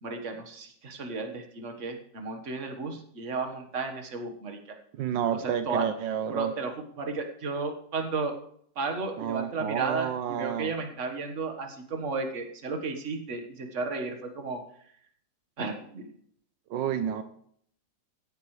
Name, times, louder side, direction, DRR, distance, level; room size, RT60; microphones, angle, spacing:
voice 1, 0.0-4.8 5.3-5.9 6.3-8.4 8.8-14.9 15.6-16.1, right 4 dB, 45° right, 5 dB, 1.7 m, -34 dB
voice 2, 5.0-6.5 9.2-10.7 16.7-17.2, right 9 dB, 85° right, 9 dB, 1.5 m, -30 dB
16.5 x 11.0 x 3.3 m, 0.64 s
omnidirectional pair, 2.0 m